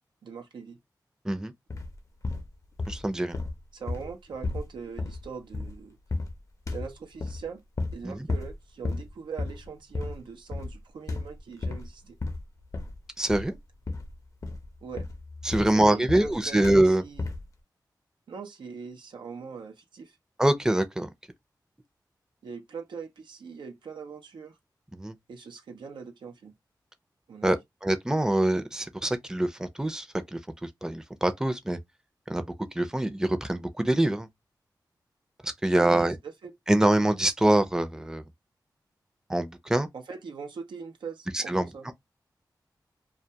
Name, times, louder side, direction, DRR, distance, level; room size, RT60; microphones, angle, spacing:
voice 1, 0.2-0.8 3.7-6.0 6.7-7.6 7.9-12.2 14.8-15.1 15.5-17.3 18.3-20.2 22.4-24.6 25.3-26.5 27.3-27.6 35.7-36.1 36.4-36.5 39.9-41.9, right 5 dB, 85° right, 0.6 m, -41 dB
sound 1, 1.7-2.0 2.2-3.1 3.3-5.8 6.1-6.4 6.7-7.4 7.8-8.0 8.3-8.5 8.8-9.1 9.4-9.7 9.9-10.2 10.5-10.8 11.1-11.9 12.2-13.0 13.3-13.6 13.9-14.2 14.4-16.4 16.6-16.9 17.1-17.5, left 3 dB, 45° left, 0.6 m, -33 dB
voice 2, 2.9-3.4 8.0-8.3 13.2-13.6 15.5-17.0 20.4-21.1 24.9-25.1 27.4-30.1 30.3-30.4 30.8-31.8 32.3-32.4 32.8-34.3 35.4-36.2 36.7-38.2 39.3-39.9 41.3-41.7, right 1 dB, 10° right, 0.5 m, -24 dB
2.2 x 2.2 x 2.7 m
cardioid pair, 45°, 8 cm